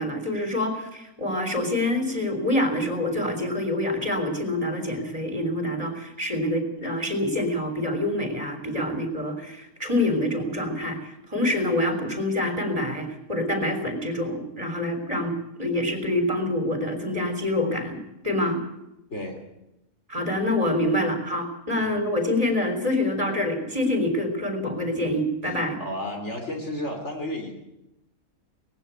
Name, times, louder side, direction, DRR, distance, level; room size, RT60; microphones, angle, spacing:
voice 1, 0.0-15.3 15.6-18.6 20.1-25.8, left 1 dB, 25° right, 6 dB, 3.7 m, -26 dB
voice 2, 25.4-27.5, left 1 dB, 55° left, 3 dB, 3.4 m, -33 dB
19.0 x 16.0 x 9.2 m, 0.90 s
omnidirectional pair, 1.5 m